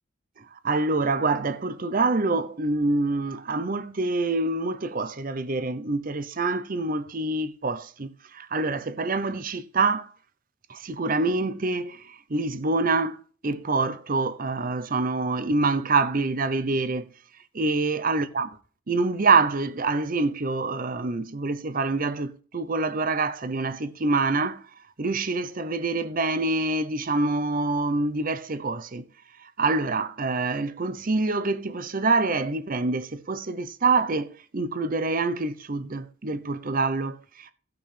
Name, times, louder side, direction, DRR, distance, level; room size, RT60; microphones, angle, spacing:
voice 1, 0.4-10.1 10.7-17.1 17.5-18.6 18.9-24.6 25.0-29.0 29.4-37.5, right 3 dB, 40° right, 0.7 m, -26 dB
16.0 x 5.9 x 3.4 m
head